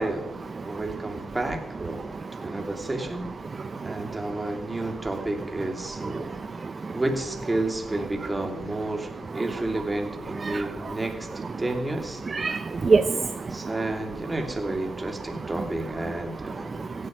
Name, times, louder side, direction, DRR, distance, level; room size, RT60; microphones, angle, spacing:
voice 1, 0.0-3.3 3.8-6.4 6.9-12.2 13.5-16.7, right 2 dB, 15° right, 3 dB, 2.8 m, -31 dB
voice 2, 6.6-7.0 10.4-10.7 12.3-13.6 16.8-17.1, right 4 dB, 35° right, 10 dB, 0.7 m, -25 dB
16.0 x 8.5 x 9.3 m, 0.84 s
cardioid pair, 90°, 0 cm